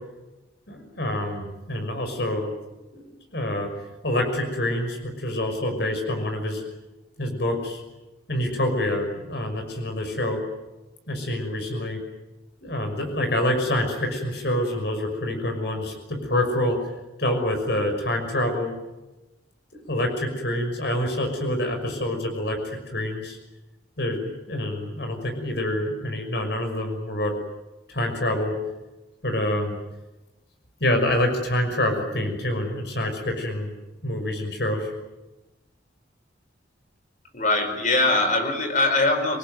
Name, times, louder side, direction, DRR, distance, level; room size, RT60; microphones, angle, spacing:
voice 1, 0.7-2.5 2.9-3.7 4.0-6.6 7.2-7.8 8.3-10.4 11.1-12.0 12.6-16.8 17.2-18.7 19.7-23.4 24.0-27.4 27.9-28.5 29.2-29.8 30.8-33.7 34.0-34.9, left 1 dB, 60° left, 4 dB, 5.9 m, -26 dB
voice 2, 37.3-39.4, left 2 dB, 40° left, 6 dB, 4.6 m, -22 dB
27.5 x 20.0 x 9.3 m, 1.0 s
head